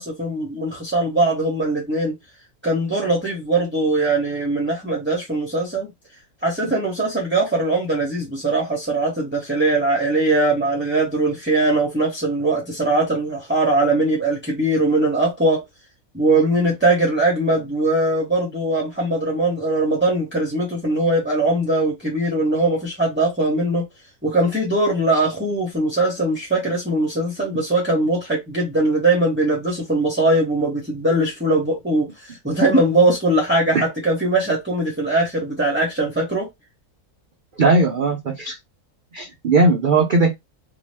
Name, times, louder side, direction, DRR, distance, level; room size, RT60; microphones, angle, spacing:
voice 1, 0.0-2.1 2.6-5.9 6.4-15.6 16.1-23.8 24.2-36.5, right 2 dB, 10° right, 0.6 m, -21 dB
voice 2, 37.6-38.6 39.1-40.3, right 3 dB, 75° right, 0.4 m, -18 dB
2.7 x 2.3 x 3.3 m
omnidirectional pair, 1.6 m